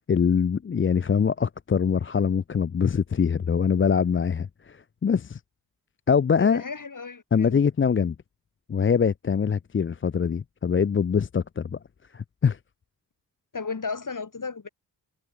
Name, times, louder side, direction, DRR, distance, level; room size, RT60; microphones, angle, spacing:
voice 1, 0.1-5.4 6.1-6.6 7.3-8.2 8.7-11.8 12.1-12.6, left 6 dB, 30° left, 0.5 m, -23 dB
voice 2, 6.4-7.6 13.5-14.7, left 4 dB, 45° left, 3.9 m, -34 dB
cardioid pair, 50°, 42 cm